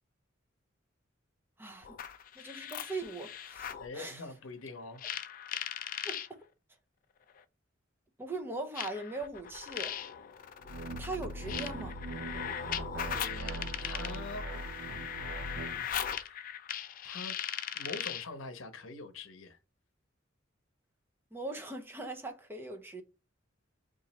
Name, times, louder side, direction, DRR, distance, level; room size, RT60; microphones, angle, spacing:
sound 1, 1.8-3.9 5.0-6.3 7.4-7.5 8.8-18.3, left 9 dB, 45° left, 0.4 m, -39 dB
voice 1, 2.4-4.2 6.0-6.4 8.2-10.0 10.9-12.0 21.3-23.0, right 2 dB, 10° right, 0.6 m, -40 dB
voice 2, 3.8-5.1 13.0-14.4 15.0-16.5 17.0-17.4 17.7-19.6, left 3 dB, 75° left, 0.7 m, -45 dB
sound 2, 10.6-15.9, right 2 dB, 65° right, 0.4 m, -41 dB
2.9 x 2.5 x 4.0 m
head